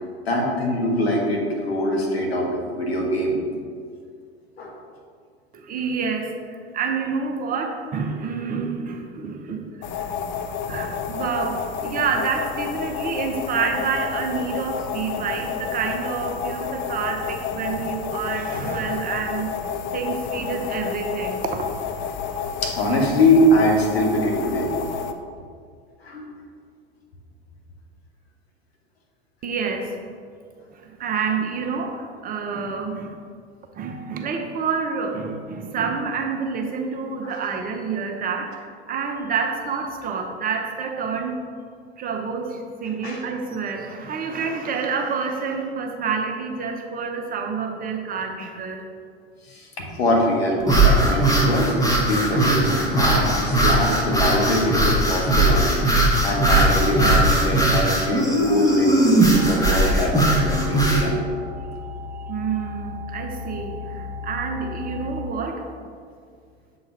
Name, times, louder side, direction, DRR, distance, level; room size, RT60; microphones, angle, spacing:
voice 1, 0.3-3.4 4.6-4.7 18.5-18.7 22.6-24.7 26.0-26.3 37.2-37.4 43.0-43.2 49.5-51.8 52.1-61.2, left 1 dB, 80° left, 0 dB, 1.2 m, -23 dB
voice 2, 5.5-10.1 10.7-19.5 19.9-21.6 29.4-30.0 30.7-33.3 33.8-41.4 42.0-48.8 52.8-53.0 53.3-53.5 62.3-65.7, right 5 dB, 30° right, 3 dB, 0.7 m, -28 dB
sound 1, 9.8-25.1, left 7 dB, 35° left, 0.5 m, -30 dB
sound 2, 50.6-61.1, right 1 dB, 10° left, 1.1 m, -19 dB
sound 3, 59.3-65.3, left 4 dB, 80° right, 0.6 m, -35 dB
7.4 x 4.0 x 3.9 m, 2.1 s
figure-of-eight pair, 80°, 31 cm